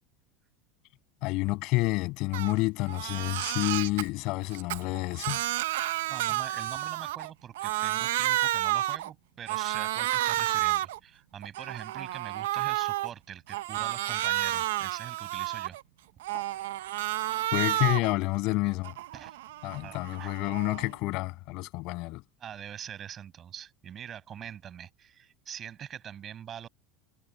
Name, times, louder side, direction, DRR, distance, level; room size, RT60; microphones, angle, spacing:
voice 1, 1.2-5.4 16.3-16.4 17.5-19.0 19.6-22.2, left 22 dB, 55° left, 7.3 m, -29 dB
Crying sobbing, 2.3-2.5 2.9-4.0 4.5-7.3 7.5-9.1 9.5-11.0 11.4-13.1 13.5-15.8 16.2-18.1 18.5-20.9, right 15 dB, 90° right, 0.7 m, -31 dB
voice 2, 5.7-15.8 19.1-19.4 19.8-20.3 22.4-26.7, right 9 dB, 30° right, 6.0 m, -43 dB
supercardioid pair, 140°, 0 cm